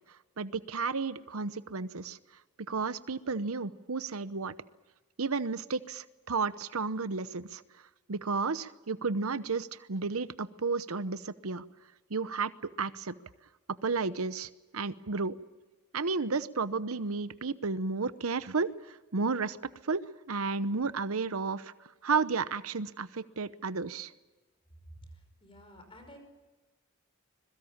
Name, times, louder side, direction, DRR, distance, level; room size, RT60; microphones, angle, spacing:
voice 1, 0.4-2.2 2.6-4.6 5.2-7.6 8.1-11.6 12.1-13.2 13.8-15.3 15.9-19.6 19.8-24.1, right 4 dB, 85° right, 14 dB, 0.9 m, -32 dB
voice 2, 24.9-26.2, equal, 25° left, 6 dB, 5.4 m, -51 dB
25.0 x 22.0 x 7.3 m, 1.2 s
head